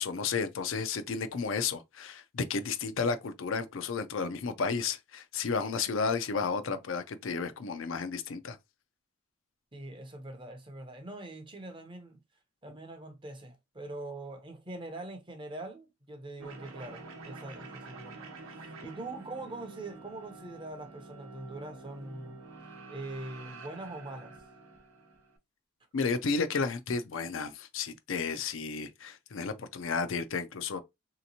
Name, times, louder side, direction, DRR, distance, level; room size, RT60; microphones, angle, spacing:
voice 1, 0.0-8.6 25.9-30.8, left 5 dB, 65° left, 0.5 m, -32 dB
voice 2, 9.7-12.2 12.6-22.4 22.9-24.4, right 2 dB, 25° right, 0.6 m, -43 dB
sound 1, 16.4-25.4, right 3 dB, 80° right, 0.8 m, -48 dB
3.3 x 2.8 x 2.7 m
head